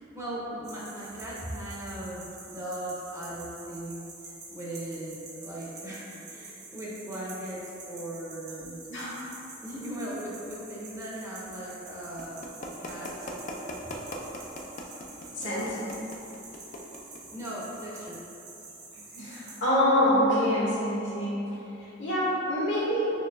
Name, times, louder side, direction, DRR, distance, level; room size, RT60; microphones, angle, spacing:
voice 1, 0.0-8.7 9.6-12.4 12.8-13.4 15.2-15.5 17.3-18.1, right 1 dB, 15° right, -7 dB, 0.7 m, -38 dB
sound 1, 0.6-19.6, right 3 dB, 60° right, 0.8 m, -47 dB
sound 2, 12.2-17.2, left 1 dB, 40° left, 0.4 m, -39 dB
voice 2, 15.3-15.8 18.9-23.1, equal, 75° left, -9 dB, 1.4 m, -26 dB
6.4 x 3.1 x 2.2 m, 2.9 s
head